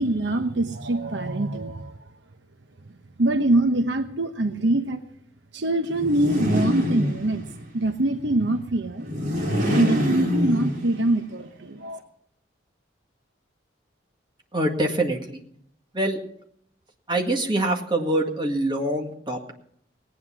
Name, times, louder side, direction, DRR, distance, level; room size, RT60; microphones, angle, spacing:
voice 1, 0.0-1.9 3.2-5.0 5.5-7.5 7.7-9.1 9.7-12.0, right 1 dB, 70° right, 7 dB, 1.0 m, -24 dB
sound 1, 5.9-7.6 9.0-11.2, equal, 45° right, 3.6 m, -25 dB
voice 2, 14.5-15.4 15.9-16.2 17.1-19.5, right 1 dB, 25° right, 2 dB, 1.9 m, -25 dB
18.5 x 9.4 x 6.2 m, 0.69 s
head